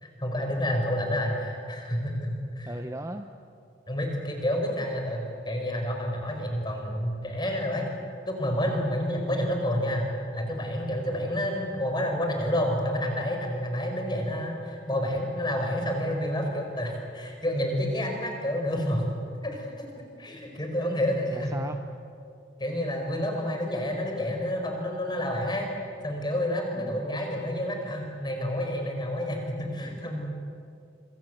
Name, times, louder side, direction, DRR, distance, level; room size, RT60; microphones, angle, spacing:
voice 1, 0.0-2.7 3.9-7.9 8.2-10.1 10.3-19.1 19.4-19.9 20.2-21.5 22.6-25.7 26.0-30.3, equal, 25° left, 3 dB, 5.0 m, -29 dB
voice 2, 2.7-3.3 21.3-21.8 26.8-27.0, right 1 dB, 15° right, 6 dB, 0.8 m, -36 dB
26.0 x 25.5 x 7.9 m, 2.4 s
head